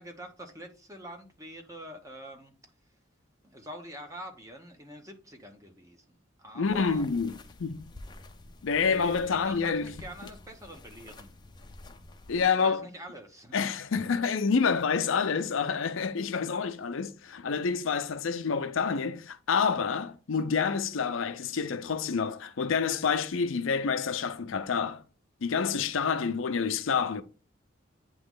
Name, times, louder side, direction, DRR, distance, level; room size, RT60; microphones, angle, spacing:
voice 1, 0.0-2.5 3.4-7.1 8.8-11.4 12.4-13.6, equal, 15° right, 0.9 m, -45 dB
voice 2, 6.6-7.9 8.6-9.9 12.3-12.9 13.5-25.0 25.4-27.2, left 5 dB, 75° left, 0.5 m, -28 dB
sound 1, 6.6-12.4, left 2 dB, 20° left, 0.5 m, -49 dB
8.7 x 3.0 x 3.7 m
head